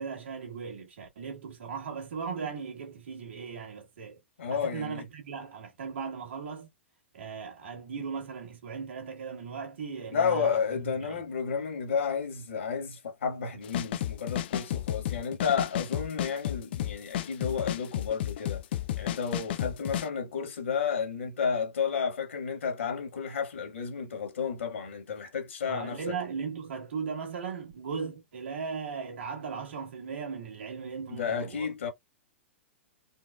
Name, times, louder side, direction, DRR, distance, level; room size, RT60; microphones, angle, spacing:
voice 1, 0.0-4.2 4.5-6.7 7.1-11.2 25.7-31.7, right 5 dB, 65° right, 1.6 m, -37 dB
voice 2, 4.4-5.1 10.1-18.6 19.0-26.1 31.1-31.9, left 6 dB, 75° left, 1.5 m, -31 dB
sound 1, 13.6-20.1, left 12 dB, 55° left, 0.4 m, -32 dB
4.3 x 2.1 x 2.2 m
figure-of-eight pair, 110°, 7 cm